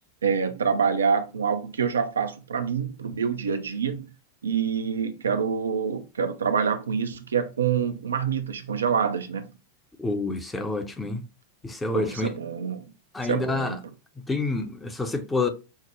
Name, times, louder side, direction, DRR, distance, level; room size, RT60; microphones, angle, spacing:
voice 1, 0.2-4.1 4.4-9.5 11.9-12.8 13.2-13.8, right 6 dB, 70° right, 0.4 m, -26 dB
voice 2, 10.0-11.2 11.6-12.3 13.1-13.8 14.3-15.5, left 3 dB, 10° left, 0.7 m, -28 dB
5.7 x 2.1 x 3.0 m
figure-of-eight pair, 90°, 0 cm